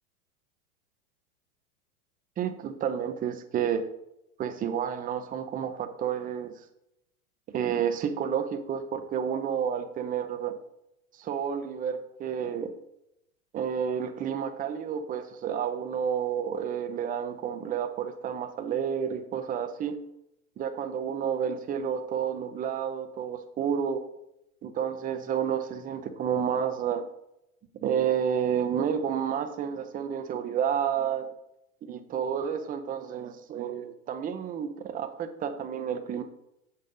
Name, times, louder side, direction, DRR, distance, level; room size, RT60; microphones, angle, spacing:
voice 1, 2.4-3.9 4.4-6.5 7.5-10.6 11.2-12.7 13.5-20.0 20.6-24.0 24.6-27.1 27.8-31.3 31.8-36.2, right 8 dB, 20° right, 8 dB, 0.6 m, -30 dB
6.4 x 5.6 x 3.7 m, 0.84 s
hypercardioid pair, 110°, 44 cm